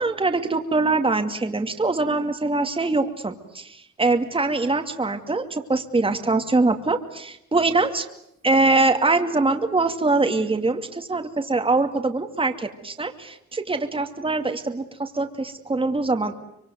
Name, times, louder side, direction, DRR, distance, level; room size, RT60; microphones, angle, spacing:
voice 1, 0.0-8.0 8.4-16.4, right 3 dB, 20° right, 6 dB, 2.4 m, -23 dB
25.0 x 23.5 x 9.4 m, 0.78 s
cardioid pair, 90°, 30 cm